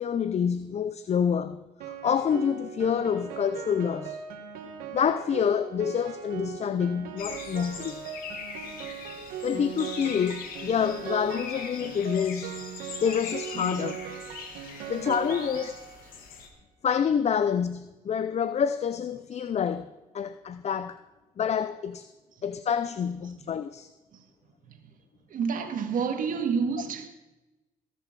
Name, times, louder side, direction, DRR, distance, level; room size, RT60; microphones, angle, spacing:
voice 1, 0.0-4.2 4.9-8.0 9.4-12.6 13.0-14.0 14.9-15.7 16.8-21.0 21.4-22.1 22.4-23.9, left 7 dB, 50° left, 0.6 m, -27 dB
Piano, 1.8-16.2, right 8 dB, 90° right, 1.4 m, -39 dB
sound 1, 7.2-16.5, left 6 dB, 80° left, 2.1 m, -41 dB
voice 2, 25.3-27.1, right 6 dB, 65° right, 1.9 m, -28 dB
19.5 x 6.9 x 6.1 m
supercardioid pair, 65°, 15 cm